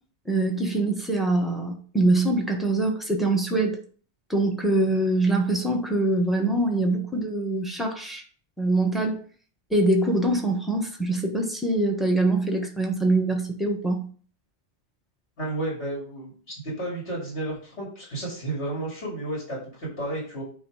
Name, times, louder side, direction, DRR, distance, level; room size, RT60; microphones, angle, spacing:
voice 1, 0.3-3.8 4.3-8.2 8.6-9.2 9.7-14.0, right 2 dB, ahead, 2 dB, 1.2 m, -24 dB
voice 2, 15.4-20.4, right 1 dB, 70° left, -4 dB, 2.8 m, -32 dB
9.0 x 3.1 x 4.8 m, 0.43 s
omnidirectional pair, 1.2 m